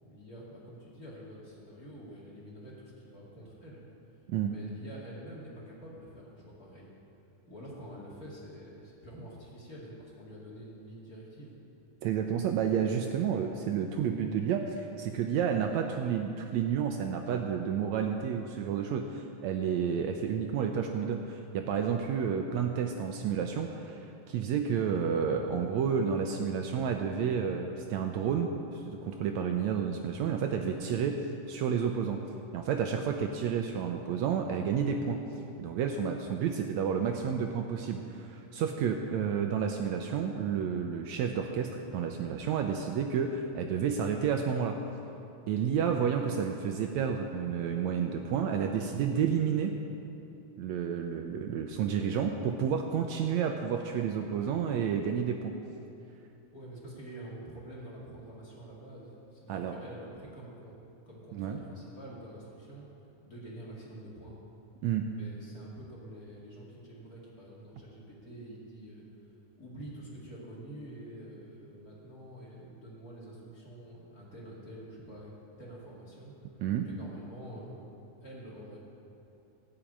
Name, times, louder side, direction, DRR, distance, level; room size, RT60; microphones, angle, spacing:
voice 1, 0.0-3.8 4.4-6.9 7.5-11.5 56.5-60.7 61.0-62.8 63.2-64.4 65.0-75.3 75.6-76.3 76.8-77.9 78.2-78.8, right 1 dB, 30° left, -6 dB, 2.6 m, -47 dB
voice 2, 12.0-31.2 31.5-32.2 32.5-35.2 35.6-44.8 45.5-49.7 50.6-55.5 59.5-59.7 61.3-61.6 64.8-65.1 76.6-76.9, right 7 dB, 75° right, 4 dB, 1.8 m, -30 dB
16.5 x 6.0 x 8.7 m, 2.9 s
omnidirectional pair, 3.5 m